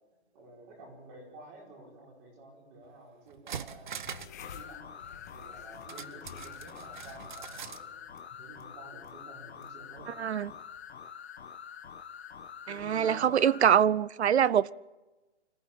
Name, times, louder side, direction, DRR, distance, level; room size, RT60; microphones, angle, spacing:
voice 1, 0.3-4.1 4.5-7.9 8.4-10.2 12.7-13.3, right 2 dB, 20° right, 5.1 m, -51 dB
sound 1, 2.8-2.9 3.3-4.4 4.7-4.8 5.9-7.9 8.2-8.3, right 7 dB, 45° right, 0.9 m, -42 dB
sound 2, 4.0-10.9, left 8 dB, 15° left, 0.8 m, -53 dB
sound 3, 4.4-13.7, left 7 dB, 65° left, 1.5 m, -46 dB
voice 2, 12.7-14.7, right 9 dB, 70° right, 0.7 m, -24 dB
25.5 x 15.0 x 8.6 m
hypercardioid pair, 175°, 34 cm